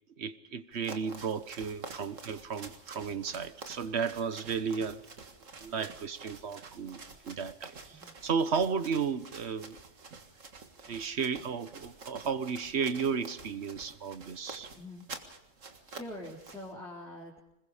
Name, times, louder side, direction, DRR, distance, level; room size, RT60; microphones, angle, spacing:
voice 1, 0.2-5.0 5.6-9.8 10.9-14.7, right 6 dB, 60° right, 13 dB, 1.4 m, -34 dB
sound 1, 0.7-16.7, right 4 dB, 80° right, 2.2 m, -49 dB
voice 2, 15.9-17.4, left 1 dB, ahead, -5 dB, 3.9 m, -44 dB
26.0 x 21.0 x 5.0 m, 0.85 s
omnidirectional pair, 1.3 m